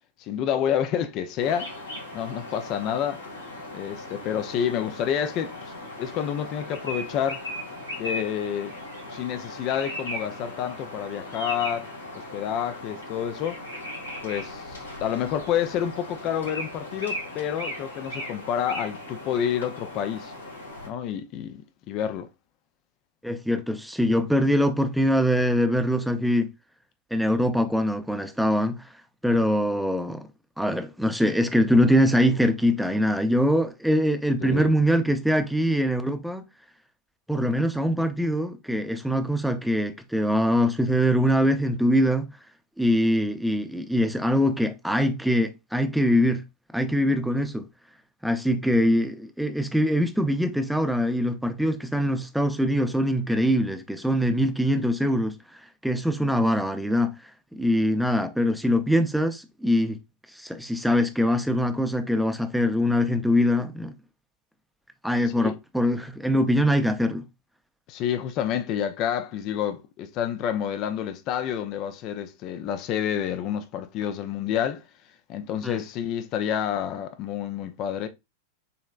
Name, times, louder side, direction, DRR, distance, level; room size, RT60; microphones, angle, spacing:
voice 1, 0.2-1.7 2.1-3.2 3.7-7.4 8.0-8.7 9.1-11.9 12.1-13.6 14.2-20.3 20.8-21.6 21.9-22.3 34.4-34.7 65.4-65.5 67.9-74.8 75.3-78.1, left 9 dB, 40° left, 0.6 m, -29 dB
sound 1, 1.4-20.9, left 1 dB, 80° left, 2.0 m, -37 dB
voice 2, 23.2-26.5 27.1-28.8 29.2-30.3 30.6-36.4 37.3-42.3 42.8-46.4 46.7-47.6 48.2-57.2 57.5-60.0 60.3-63.9 65.0-67.2 75.6-75.8, equal, ahead, 0.7 m, -23 dB
6.8 x 3.2 x 2.4 m
figure-of-eight pair, 90°, 0 cm